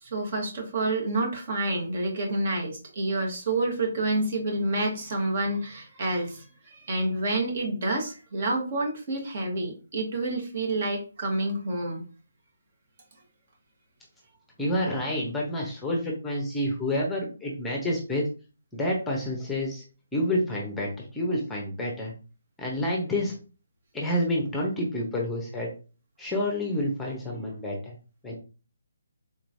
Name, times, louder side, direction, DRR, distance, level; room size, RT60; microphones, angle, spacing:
voice 1, 0.0-12.1, right 2 dB, 45° right, 1 dB, 1.3 m, -28 dB
voice 2, 14.6-18.3 18.7-19.8 20.1-22.1 22.6-23.4 23.9-25.7 26.2-28.0 28.2-28.3, left 1 dB, 5° left, -1 dB, 0.8 m, -28 dB
3.8 x 3.0 x 2.6 m, 0.34 s
figure-of-eight pair, 155°, 0 cm